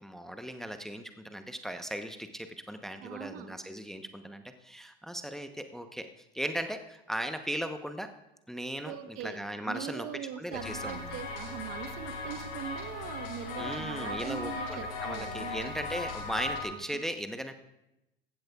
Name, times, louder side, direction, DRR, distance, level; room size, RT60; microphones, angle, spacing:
voice 1, 0.0-6.1 6.3-8.1 8.5-10.1 10.4-11.2 13.6-17.5, equal, ahead, 8 dB, 0.9 m, -37 dB
voice 2, 3.0-3.6 8.8-15.7 16.7-16.8, right 9 dB, 50° right, 10 dB, 1.2 m, -41 dB
sound 1, 10.5-16.6, left 3 dB, 75° left, 6.0 m, -38 dB
20.0 x 15.5 x 2.4 m, 0.90 s
hypercardioid pair, 75°, 29 cm